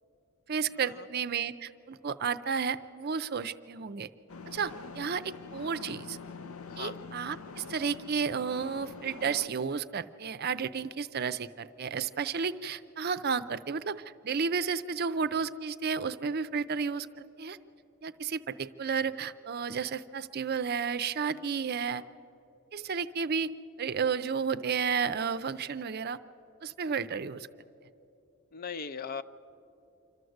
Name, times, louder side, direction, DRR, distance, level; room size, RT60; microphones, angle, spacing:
voice 1, 0.5-4.1 4.5-6.2 6.8-17.6 18.0-22.0 22.7-23.5 23.8-26.2 26.6-27.5, right 6 dB, 50° right, 13 dB, 0.5 m, -32 dB
sound 1, 4.3-9.5, left 4 dB, 85° left, 0.7 m, -45 dB
voice 2, 6.7-7.0 28.5-29.2, left 5 dB, 45° left, 11 dB, 0.5 m, -39 dB
26.5 x 12.5 x 7.9 m, 2.9 s
head